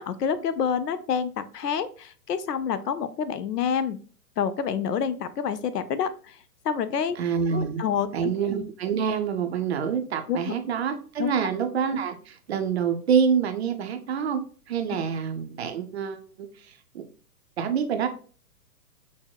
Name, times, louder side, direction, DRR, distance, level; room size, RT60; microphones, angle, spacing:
voice 1, 0.0-4.0 4.4-6.4 6.6-7.2 7.5-8.3 10.3-10.5 11.2-11.3, left 7 dB, 80° left, 13 dB, 0.6 m, -28 dB
voice 2, 7.2-7.8 8.1-17.0 17.6-18.1, right 7 dB, 45° right, 7 dB, 0.5 m, -27 dB
6.1 x 2.0 x 2.2 m, 0.41 s
figure-of-eight pair, 125°, 48 cm